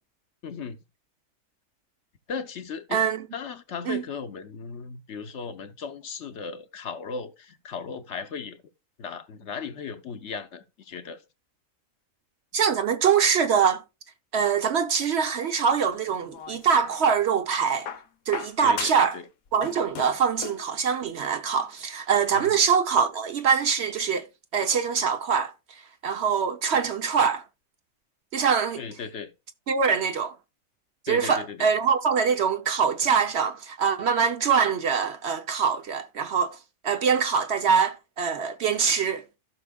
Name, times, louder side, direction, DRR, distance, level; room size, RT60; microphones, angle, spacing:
voice 1, 0.4-0.8 2.3-3.0 3.3-8.6 9.0-11.2 18.6-19.2 22.3-22.6 28.8-29.3 31.1-31.7, left 5 dB, 60° left, 1.0 m, -36 dB
voice 2, 2.9-3.2 3.9-4.0 12.5-13.8 14.3-17.9 18.3-19.2 19.5-25.5 26.0-27.4 28.3-28.8 29.7-30.3 31.1-36.6 36.8-39.2, right 6 dB, 60° right, 0.8 m, -24 dB
sound 1, 16.1-17.1 17.9-19.2 19.5-20.7 21.8-21.9, left 8 dB, 90° left, 1.3 m, -38 dB
15.0 x 6.1 x 2.2 m
omnidirectional pair, 1.4 m